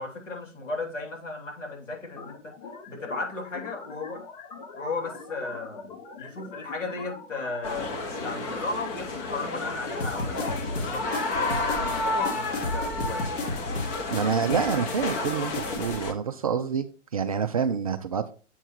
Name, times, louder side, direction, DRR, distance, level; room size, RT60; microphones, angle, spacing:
voice 1, 0.0-4.2 4.7-13.3, left 3 dB, 75° left, 3.4 m, -35 dB
sound 1, 2.2-12.1, left 4 dB, 40° left, 1.6 m, -43 dB
sound 2, 7.6-16.1, left 2 dB, 20° left, 0.9 m, -31 dB
sound 3, 10.0-16.0, left 2 dB, 55° left, 2.1 m, -33 dB
voice 2, 14.1-18.3, right 6 dB, 30° right, 0.4 m, -27 dB
8.0 x 4.5 x 4.4 m
figure-of-eight pair, 135°, 38 cm